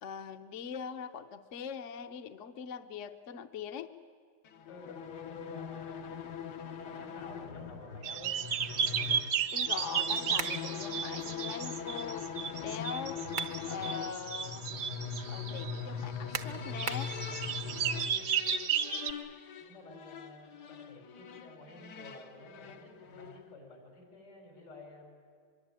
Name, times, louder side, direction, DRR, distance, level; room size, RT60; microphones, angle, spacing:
voice 1, 0.0-4.0 5.0-5.1 9.5-12.3 12.6-13.2 13.7-14.7 15.3-17.1 17.9-18.7, left 7 dB, 55° left, 7 dB, 1.1 m, -42 dB
sound 1, 4.5-23.5, left 7 dB, 75° left, 1.6 m, -42 dB
voice 2, 4.6-6.1 6.8-8.4 19.6-25.1, left 2 dB, 90° left, 2 dB, 6.2 m, -50 dB
sound 2, 8.0-15.8 16.8-19.1, right 7 dB, 55° right, 1.2 m, -34 dB
sound 3, 10.4-10.7 13.0-13.6 14.1-14.2 16.3-17.1, right 7 dB, 75° right, 1.7 m, -38 dB
24.0 x 23.0 x 8.9 m, 2.1 s
omnidirectional pair, 1.8 m